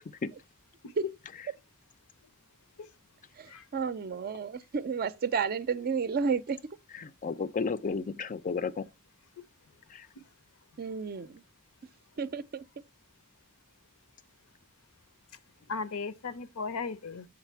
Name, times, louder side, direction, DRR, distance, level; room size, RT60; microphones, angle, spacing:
voice 1, 3.7-6.6 10.8-11.4 12.2-12.6, right 5 dB, 45° right, 0.5 m, -31 dB
voice 2, 6.9-8.9 9.9-10.1, left 4 dB, 35° left, 0.4 m, -33 dB
voice 3, 15.7-17.3, left 4 dB, 70° left, 0.7 m, -36 dB
7.1 x 4.9 x 4.5 m
head